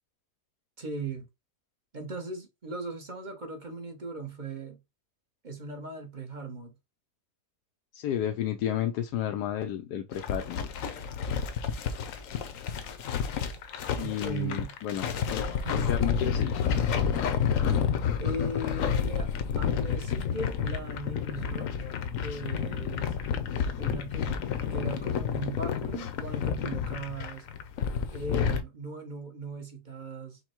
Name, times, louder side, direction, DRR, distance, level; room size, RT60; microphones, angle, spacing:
voice 1, 0.8-1.2 1.9-4.8 5.4-6.7 14.0-14.7 15.5-15.9 18.2-21.7 22.2-23.2 23.8-24.3 24.7-27.5 28.1-30.4, right 2 dB, 35° right, 0.9 m, -38 dB
voice 2, 7.9-10.7 14.0-16.6, left 11 dB, 85° left, 1.2 m, -32 dB
sound 1, 10.1-28.6, left 7 dB, 60° left, 1.0 m, -30 dB
5.4 x 2.2 x 4.4 m
omnidirectional pair, 1.7 m